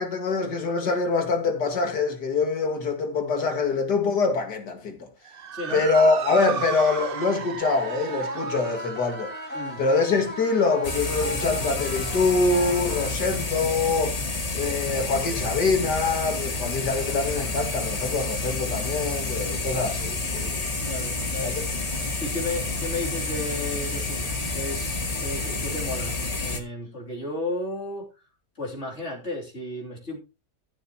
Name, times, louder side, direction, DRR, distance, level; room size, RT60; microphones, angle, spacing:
voice 1, 0.0-5.1 5.7-9.3 9.8-14.2 14.5-20.5 21.4-21.5, left 4 dB, 80° left, 2.6 m, -24 dB
Motor vehicle (road) / Siren, 5.2-13.8, right 8 dB, 55° right, 0.6 m, -37 dB
voice 2, 5.5-5.9 9.5-9.8 13.0-13.2 16.6-16.7 20.9-21.5 22.2-28.1 28.6-30.2, left 2 dB, 40° left, 3.5 m, -34 dB
sound 1, 7.6-13.6, equal, 5° left, 4.2 m, -36 dB
sound 2, 10.8-26.6, left 3 dB, 25° left, 1.2 m, -29 dB
14.0 x 8.3 x 3.0 m
omnidirectional pair, 1.8 m